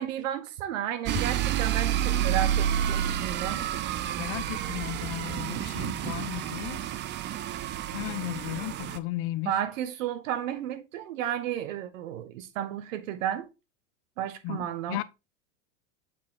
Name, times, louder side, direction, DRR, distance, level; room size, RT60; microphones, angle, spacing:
voice 1, 0.0-3.6 9.4-13.5 14.2-15.0, right 10 dB, 85° right, 1.4 m, -32 dB
sound 1, 1.1-9.0, right 10 dB, 30° right, 0.5 m, -29 dB
voice 2, 4.2-6.8 7.9-9.6 14.4-15.0, left 17 dB, 35° left, 0.5 m, -35 dB
7.4 x 4.7 x 3.8 m
supercardioid pair, 135°, 38 cm